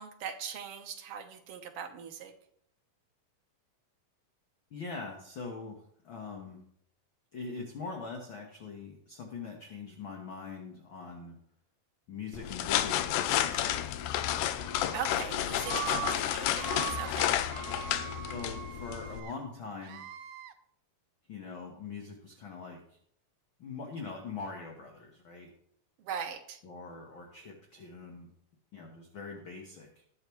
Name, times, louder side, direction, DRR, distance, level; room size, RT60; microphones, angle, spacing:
voice 1, 0.0-2.3 14.9-17.4 26.0-26.6, right 7 dB, 65° right, 4 dB, 1.5 m, -40 dB
voice 2, 4.7-6.6 7.3-11.4 12.1-14.2 18.3-20.1 21.3-23.0 23.6-25.5 26.6-28.3 28.7-29.9, left 4 dB, 55° left, 1 dB, 1.5 m, -43 dB
sound 1, 12.3-19.2, left 12 dB, 80° left, 2.0 m, -31 dB
Screaming, 14.4-15.0 15.5-16.2 16.5-17.1 17.5-19.3 19.8-20.5, right 11 dB, 85° right, 2.3 m, -40 dB
20.5 x 7.1 x 3.2 m, 0.68 s
omnidirectional pair, 3.9 m